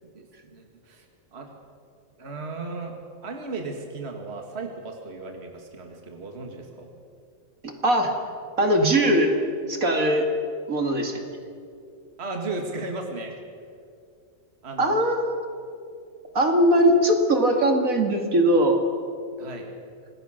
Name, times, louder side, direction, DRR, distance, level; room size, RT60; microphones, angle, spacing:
voice 1, 0.1-1.1 1.3-1.5 2.2-2.9 3.2-6.9 12.2-13.4 14.6-15.0 19.4-19.7, right 3 dB, 40° right, 3 dB, 2.2 m, -35 dB
voice 2, 7.6-8.1 8.6-9.3 9.7-10.3 10.7-11.2 14.8-15.3 16.3-18.8, right 1 dB, 60° right, 4 dB, 2.6 m, -20 dB
26.5 x 20.0 x 6.6 m, 2.4 s
omnidirectional pair, 1.7 m